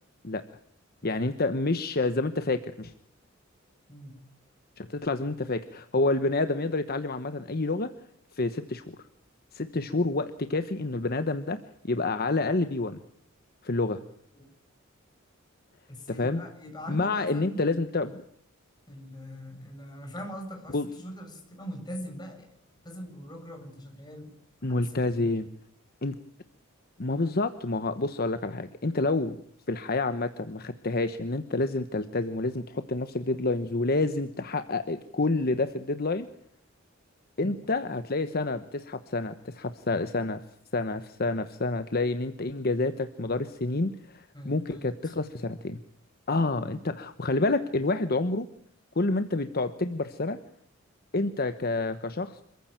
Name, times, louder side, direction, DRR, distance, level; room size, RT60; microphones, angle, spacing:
voice 1, 1.0-2.9 4.8-7.9 8.3-8.9 9.5-11.6 11.8-13.0 13.6-14.0 16.1-16.4 16.9-18.2 20.7-20.9 24.6-25.5 26.0-26.2 27.0-29.4 29.7-36.3 37.4-40.4 40.7-45.8 46.3-48.5 48.9-50.4 51.1-52.4, left 2 dB, 50° left, 10 dB, 1.1 m, -28 dB
voice 2, 3.9-4.2 9.7-10.0 14.3-14.4 15.9-17.8 18.9-22.5 22.8-24.3 24.7-25.4 37.4-37.5 44.3-45.1 46.3-46.8, equal, 20° left, 2 dB, 7.3 m, -42 dB
27.0 x 15.0 x 9.0 m, 0.69 s
head